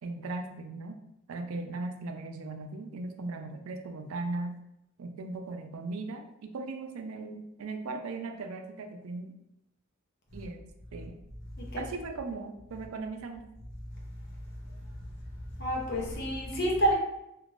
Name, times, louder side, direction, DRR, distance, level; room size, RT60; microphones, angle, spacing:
voice 1, 0.0-1.0 1.3-4.5 5.0-9.3 10.3-10.6 10.9-11.2 11.8-13.4, right 3 dB, 90° right, 0.4 m, -38 dB
voice 2, 15.5-16.9, right 1 dB, 50° left, 0.7 m, -29 dB
3.1 x 2.5 x 2.5 m
head